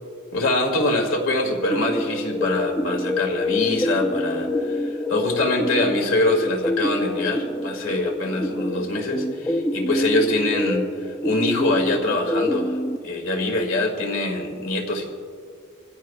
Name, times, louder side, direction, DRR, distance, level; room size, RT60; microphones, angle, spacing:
voice 1, 0.3-12.8 13.0-15.1, left 2 dB, 70° left, 2 dB, 2.3 m, -24 dB
sound 1, 1.7-13.0, left 2 dB, 20° left, 0.7 m, -26 dB
27.5 x 16.0 x 2.4 m, 2.1 s
head